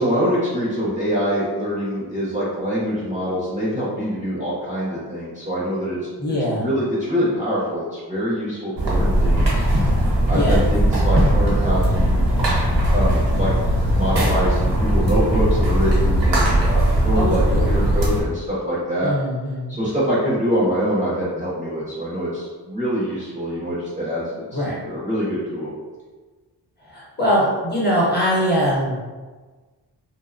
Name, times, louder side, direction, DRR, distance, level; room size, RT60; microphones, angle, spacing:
voice 1, 0.0-6.0 6.6-9.6 10.3-12.3 12.9-13.5 13.9-19.1 19.7-25.7, equal, 20° right, -9 dB, 0.5 m, -24 dB
voice 2, 6.2-6.7 10.3-10.6 17.1-17.7 19.0-19.8 24.5-24.8 26.9-28.9, equal, 25° left, -7 dB, 0.7 m, -22 dB
sound 1, 8.8-18.2, right 1 dB, 90° right, 0.8 m, -19 dB
2.7 x 2.0 x 2.4 m, 1.4 s
wide cardioid pair, 155°, 41 cm